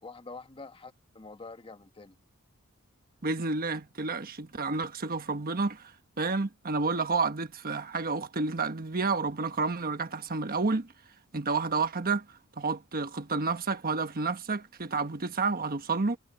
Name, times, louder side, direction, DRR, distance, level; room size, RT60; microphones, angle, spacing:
voice 1, 0.0-2.1, left 3 dB, 25° left, 1.3 m, -46 dB
voice 2, 3.2-5.9 6.2-10.9 11.3-12.2 12.6-16.2, right 4 dB, 45° right, 1.3 m, -30 dB
head